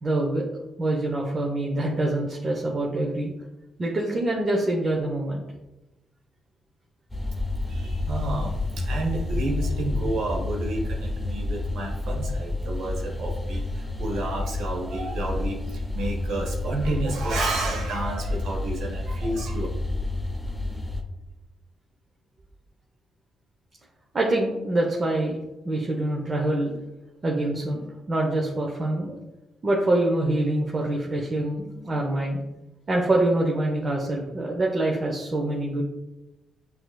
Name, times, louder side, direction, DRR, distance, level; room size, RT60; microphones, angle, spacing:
voice 1, 0.0-0.5 0.8-3.3 3.8-5.4 24.1-25.4 25.6-26.8 27.2-27.8 28.1-29.2 29.6-32.4 32.9-35.8, right 1 dB, 40° right, -1 dB, 0.7 m, -25 dB
sound 1, 7.1-21.0, left 2 dB, 10° left, 0.7 m, -29 dB
voice 2, 7.7-19.7, right 2 dB, 80° right, -1 dB, 0.7 m, -31 dB
5.9 x 2.7 x 2.3 m, 0.99 s
supercardioid pair, 60°, 0 cm